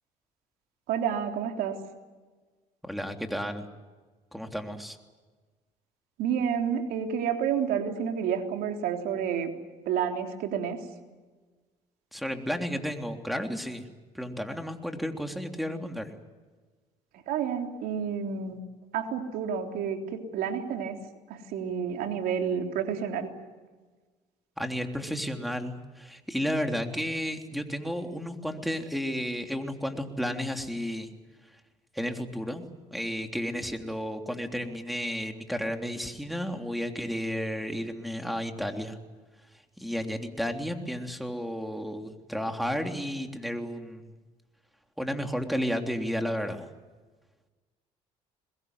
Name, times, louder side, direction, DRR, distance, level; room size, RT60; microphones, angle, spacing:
voice 1, 0.9-1.8 6.2-9.5 9.9-10.8 17.3-18.6 18.9-21.0 21.3-23.3, right 7 dB, 75° right, 4 dB, 3.5 m, -30 dB
voice 2, 2.8-3.7 4.3-5.0 12.1-13.8 14.1-16.1 24.6-31.1 31.9-32.6 32.9-39.0 39.8-44.1 45.0-46.7, equal, ahead, 4 dB, 3.3 m, -32 dB
22.5 x 21.5 x 9.7 m, 1.3 s
supercardioid pair, 80°, 16 cm